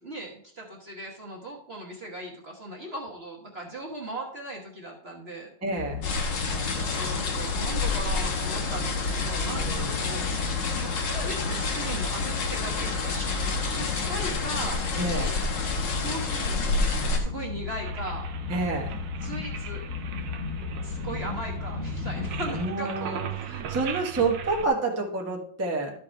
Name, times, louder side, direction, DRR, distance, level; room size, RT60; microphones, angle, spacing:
voice 1, 0.0-5.5 6.8-13.3 13.7-14.8 16.0-16.6 17.2-18.3 19.2-19.8 20.8-23.8, right 1 dB, 35° right, -2 dB, 1.3 m, -38 dB
voice 2, 5.6-6.0 9.5-10.1 14.9-15.4 18.5-18.9 22.5-25.9, right 3 dB, 10° right, -1 dB, 1.1 m, -29 dB
sound 1, 5.8-22.5, left 7 dB, 45° left, 1.1 m, -35 dB
sound 2, 6.0-17.2, left 3 dB, 70° left, 2.0 m, -29 dB
sound 3, 17.8-24.7, right 8 dB, 75° right, 1.4 m, -38 dB
12.0 x 4.8 x 4.6 m, 0.62 s
omnidirectional pair, 2.1 m